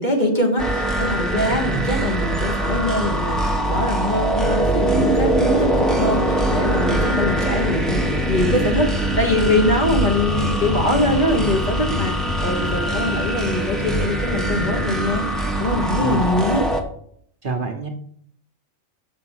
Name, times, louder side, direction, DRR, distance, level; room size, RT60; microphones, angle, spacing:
voice 1, 0.0-16.6, left 1 dB, 35° left, 2 dB, 1.4 m, -23 dB
sound 1, 0.6-16.8, right 1 dB, ahead, 0.9 m, -22 dB
voice 2, 1.5-1.9 16.0-16.2 17.4-17.9, right 4 dB, 45° right, 1 dB, 1.1 m, -27 dB
6.6 x 6.0 x 6.2 m, 0.64 s
omnidirectional pair, 1.3 m